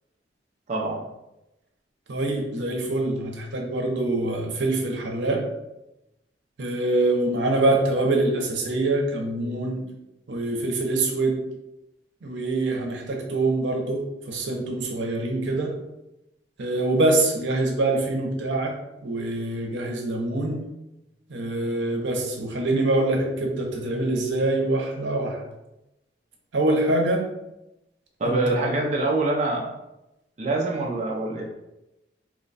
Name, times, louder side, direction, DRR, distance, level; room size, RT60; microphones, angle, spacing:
voice 1, 0.7-1.1 28.2-29.8 30.4-31.4, right 2 dB, 40° right, -1 dB, 0.5 m, -25 dB
voice 2, 2.1-5.5 6.6-9.8 10.3-11.4 12.2-15.7 16.6-18.7 19.0-20.6 21.3-25.4 26.5-27.2 28.3-28.4 28.6-28.7, right 2 dB, 90° right, 1 dB, 0.7 m, -24 dB
3.0 x 2.2 x 3.9 m, 0.93 s
head